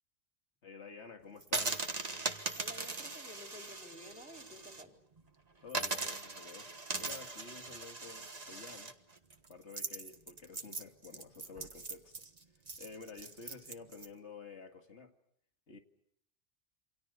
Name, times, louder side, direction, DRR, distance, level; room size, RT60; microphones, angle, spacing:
voice 1, 0.6-1.8 5.6-8.9 9.5-12.1 12.8-15.1 15.7-15.8, left 4 dB, 85° left, 2.4 m, -51 dB
sound 1, 1.4-4.8 5.2-5.3 5.7-14.1, right 3 dB, 35° right, 1.5 m, -40 dB
voice 2, 2.6-5.0, left 1 dB, 5° right, 3.7 m, -52 dB
28.0 x 26.0 x 6.8 m
omnidirectional pair, 1.1 m